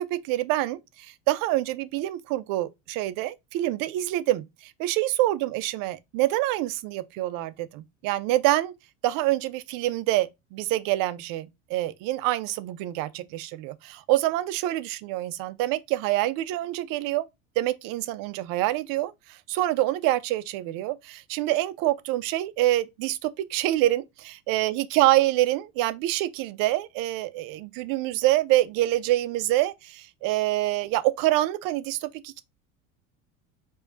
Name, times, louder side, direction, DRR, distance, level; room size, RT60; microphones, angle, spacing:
voice 1, 0.0-8.7 9.0-17.3 17.6-32.4, right 15 dB, 60° right, 0.6 m, -26 dB
4.7 x 2.9 x 2.7 m
hypercardioid pair, 90°, 39 cm